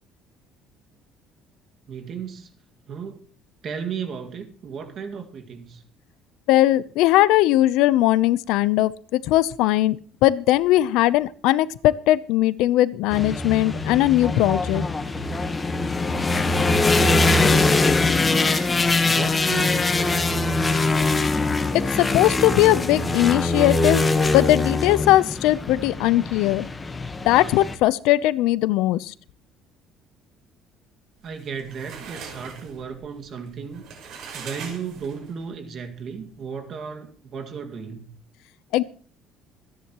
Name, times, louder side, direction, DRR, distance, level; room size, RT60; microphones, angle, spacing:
voice 1, 1.9-2.5 2.9-3.2 3.6-5.8 17.0-18.6 19.1-20.8 31.2-33.9 34.3-38.2, right 6 dB, 40° right, 2.1 m, -35 dB
voice 2, 6.5-10.0 10.2-14.8 21.7-24.0 24.3-26.7 27.3-29.0 38.7-38.8, left 15 dB, 75° left, 0.7 m, -19 dB
sound 1, 13.1-27.8, left 3 dB, 15° left, 1.3 m, -22 dB
sound 2, 31.3-35.4, right 6 dB, 55° right, 5.8 m, -41 dB
26.0 x 10.5 x 3.1 m
cardioid pair, 175°, 0 cm